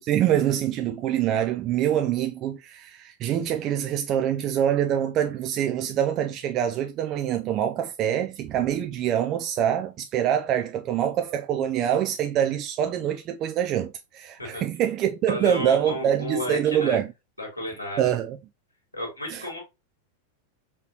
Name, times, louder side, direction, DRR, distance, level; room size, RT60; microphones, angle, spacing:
voice 1, 0.0-17.1 18.0-18.4 19.3-19.5, right 10 dB, 35° right, 0.4 m, -25 dB
voice 2, 15.3-17.0 17.4-18.1 18.9-19.6, left 1 dB, 85° left, 2.3 m, -32 dB
4.2 x 4.0 x 2.8 m
figure-of-eight pair, 90°, 0 cm